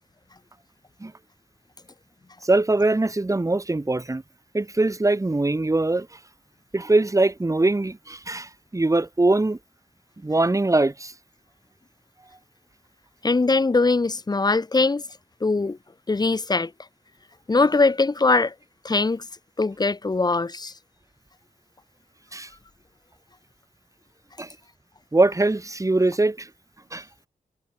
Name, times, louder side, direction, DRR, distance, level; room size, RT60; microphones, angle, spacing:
voice 1, 2.4-4.2 4.5-6.1 6.7-9.6 10.2-11.1 22.3-22.5 24.4-24.5 25.1-26.5 26.9-27.0, right 2 dB, 20° right, 4.2 m, -22 dB
voice 2, 13.2-15.0 15.4-15.8 16.1-16.7 17.5-18.5 18.8-19.2 19.6-20.7, left 3 dB, 25° left, 1.1 m, -21 dB
wide cardioid pair, 100°, 16 cm